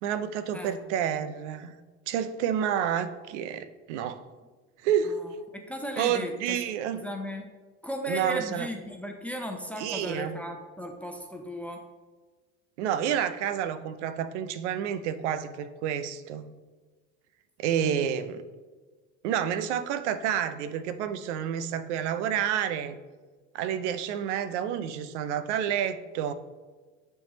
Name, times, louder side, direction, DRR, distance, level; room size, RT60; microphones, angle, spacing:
voice 1, 0.0-1.7 2.1-4.2 4.8-5.2 6.0-7.0 8.1-8.7 9.8-10.4 12.8-16.5 17.6-18.4 19.2-23.0 23.5-26.3, right 9 dB, 85° right, 12 dB, 0.6 m, -29 dB
voice 2, 5.1-6.6 6.9-7.5 7.8-11.8, equal, 5° left, 3 dB, 0.7 m, -36 dB
10.0 x 3.5 x 3.0 m, 1.3 s
supercardioid pair, 100°, 34 cm